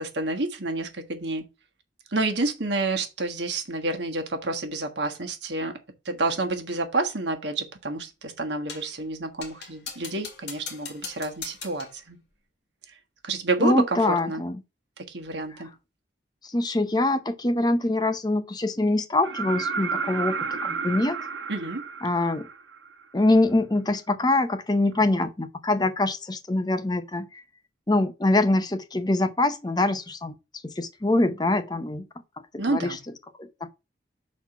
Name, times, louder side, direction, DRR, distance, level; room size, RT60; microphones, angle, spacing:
voice 1, 0.0-1.4 2.1-5.8 6.0-12.2 13.2-14.4 15.0-15.7 21.5-21.8 32.6-33.0, right 2 dB, 70° right, 1.4 m, -29 dB
sound 1, 8.7-9.0 9.4-12.0, left 6 dB, 65° left, 1.9 m, -40 dB
voice 2, 13.6-14.6 16.4-21.2 22.0-22.5 23.1-27.4 27.9-30.4 30.6-32.1 32.5-33.0 33.4-33.7, left 2 dB, 20° left, 0.7 m, -24 dB
sound 2, 19.2-23.0 24.9-25.0, right 5 dB, 85° right, 1.1 m, -31 dB
5.9 x 4.3 x 5.6 m
head